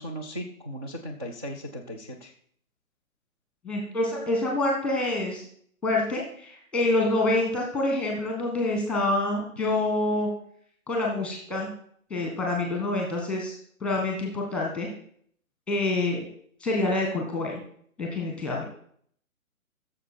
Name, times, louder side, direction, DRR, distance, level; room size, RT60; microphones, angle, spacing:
voice 1, 0.0-2.3, equal, 20° right, -1 dB, 0.5 m, -37 dB
voice 2, 3.6-5.4 5.8-10.3 10.9-11.7 12.1-13.5 13.8-14.9 15.7-16.3 16.6-17.6 18.0-18.7, left 2 dB, 5° left, 0 dB, 1.4 m, -27 dB
15.0 x 6.9 x 4.4 m, 0.63 s
figure-of-eight pair, 140°, 43 cm